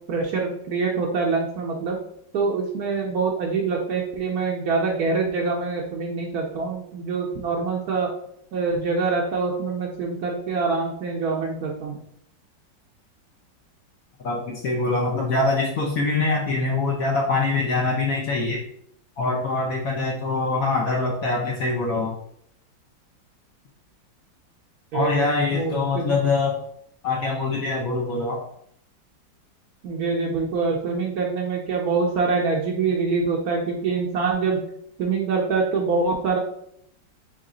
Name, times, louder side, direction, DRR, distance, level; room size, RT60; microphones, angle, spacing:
voice 1, 0.1-2.0 2.3-8.1 8.5-12.0 24.9-26.2 29.8-34.6 35.0-36.4, right 4 dB, 65° right, -1 dB, 1.0 m, -25 dB
voice 2, 14.2-18.6 19.2-22.1 24.9-26.6 27.0-28.4, left 3 dB, 65° left, -1 dB, 0.9 m, -24 dB
3.9 x 3.1 x 3.7 m, 0.70 s
omnidirectional pair, 2.1 m